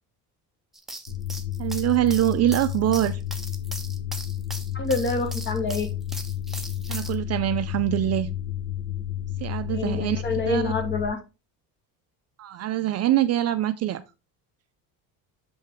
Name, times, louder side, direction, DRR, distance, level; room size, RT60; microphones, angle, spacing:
sound 1, 0.7-7.1, right 1 dB, ahead, 0.7 m, -39 dB
sound 2, 1.1-11.1, left 11 dB, 75° left, 4.6 m, -31 dB
voice 1, 1.6-3.2 6.9-8.3 9.4-10.7 12.4-14.0, right 13 dB, 40° right, 11 dB, 0.5 m, -24 dB
voice 2, 4.7-5.9 9.7-11.2, left 3 dB, 30° left, 7 dB, 1.4 m, -27 dB
7.0 x 5.6 x 3.5 m, 0.28 s
cardioid pair, 150°, 39 cm